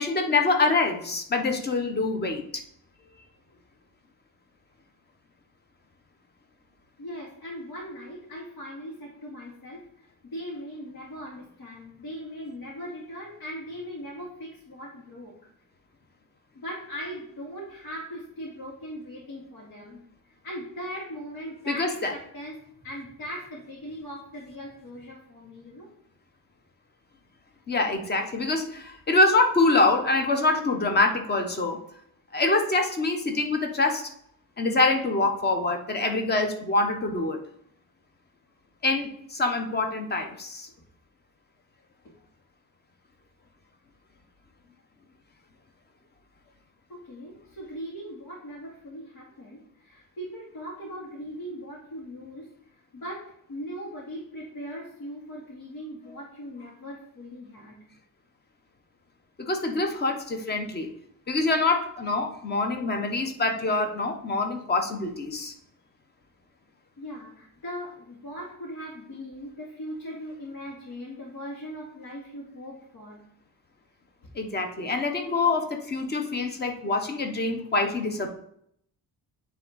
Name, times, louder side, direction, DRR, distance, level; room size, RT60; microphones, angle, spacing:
voice 1, 0.0-2.6 21.7-22.1 27.7-31.8 32.3-34.1 34.6-37.4 38.8-40.7 59.4-60.9 61.3-65.5 74.3-78.3, left 3 dB, 30° left, 4 dB, 0.9 m, -25 dB
voice 2, 3.0-3.3 7.0-10.1 10.3-15.3 16.5-25.9 46.9-57.8 67.0-73.2, equal, 80° left, -7 dB, 2.4 m, -39 dB
8.8 x 3.5 x 3.9 m, 0.70 s
cardioid pair, 145°, 36 cm